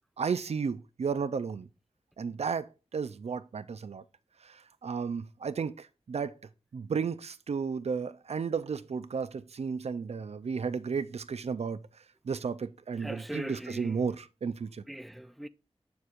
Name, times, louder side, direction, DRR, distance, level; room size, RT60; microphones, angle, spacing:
voice 1, 0.2-1.7 2.2-4.0 4.4-6.4 6.7-11.8 12.2-14.8, right 5 dB, 80° right, 0.4 m, -33 dB
voice 2, 13.0-14.0 14.9-15.5, right 1 dB, ahead, 0.3 m, -40 dB
7.0 x 6.3 x 2.5 m
wide cardioid pair, 80°, 11 cm